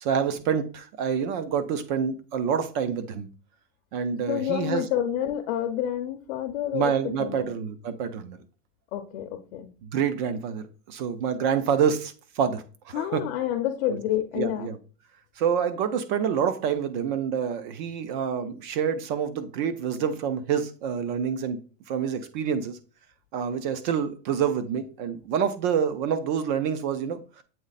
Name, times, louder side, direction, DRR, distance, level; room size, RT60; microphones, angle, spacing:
voice 1, 0.0-3.3 3.9-4.8 6.7-8.4 9.8-13.2 13.9-14.0 14.3-14.8 15.4-21.6 21.9-22.8 23.3-27.2, right 7 dB, 35° right, 0.6 m, -27 dB
voice 2, 4.3-7.5 8.9-9.7 12.9-14.7, left 11 dB, 45° left, 0.7 m, -29 dB
7.7 x 3.1 x 4.0 m
supercardioid pair, 170°, 41 cm